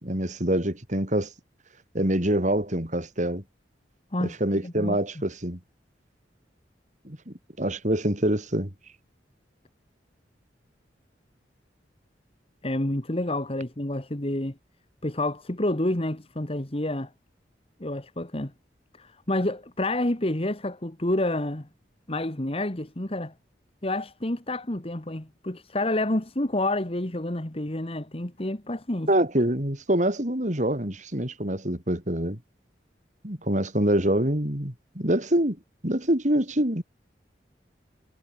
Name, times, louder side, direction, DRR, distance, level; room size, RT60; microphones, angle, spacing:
voice 1, 0.0-1.3 1.9-3.4 4.2-5.6 7.0-8.7 29.1-32.4 33.2-35.6 35.8-36.8, right 1 dB, 45° right, 4.3 m, -25 dB
voice 2, 4.6-5.0 12.6-14.5 15.0-17.1 17.8-18.5 19.0-21.7 22.1-23.3 23.8-29.1, left 1 dB, 35° left, 1.8 m, -29 dB
head